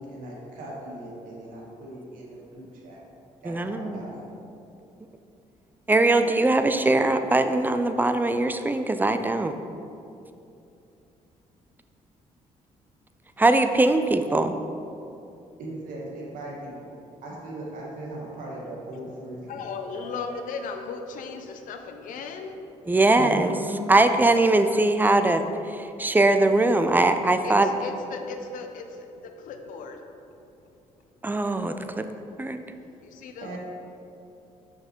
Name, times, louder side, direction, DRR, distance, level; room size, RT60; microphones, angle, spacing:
voice 1, 0.0-3.0 3.4-4.2 15.6-16.9 17.2-19.6 19.9-20.0 23.1-23.9 33.4-33.6, right 1 dB, 85° right, -3 dB, 1.5 m, -38 dB
voice 2, 3.4-4.1 5.9-9.5 13.4-14.6 22.9-23.5 23.9-27.7 31.2-32.1 32.4-32.6, right 2 dB, 15° right, 8 dB, 0.4 m, -21 dB
voice 3, 19.5-22.6 24.4-24.8 27.4-30.3 31.8-31.9 32.9-33.6, left 4 dB, 80° left, 5 dB, 0.7 m, -37 dB
5.7 x 5.7 x 4.5 m, 2.7 s
cardioid pair, 75°, 14 cm